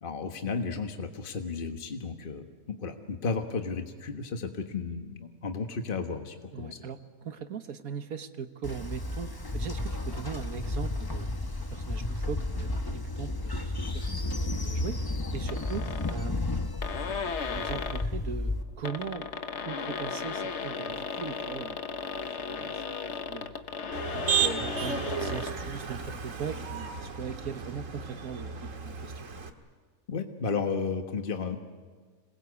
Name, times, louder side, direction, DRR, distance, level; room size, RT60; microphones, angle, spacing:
voice 1, 0.0-6.8 30.1-31.6, left 4 dB, 40° left, 5 dB, 1.6 m, -33 dB
voice 2, 6.5-11.3 11.7-16.6 17.1-19.3 19.6-21.8 22.1-22.8 23.2-23.5 24.0-29.3, right 6 dB, 85° right, 8 dB, 1.7 m, -40 dB
Train, 8.6-18.6, left 2 dB, 20° left, 1.0 m, -32 dB
sound 1, 15.5-16.2 16.5-16.6 16.8-18.1 18.7-25.5, left 5 dB, 55° left, 1.3 m, -35 dB
Motor vehicle (road), 23.9-29.5, right 7 dB, 65° right, 2.0 m, -33 dB
26.5 x 21.0 x 8.3 m, 1.5 s
omnidirectional pair, 1.5 m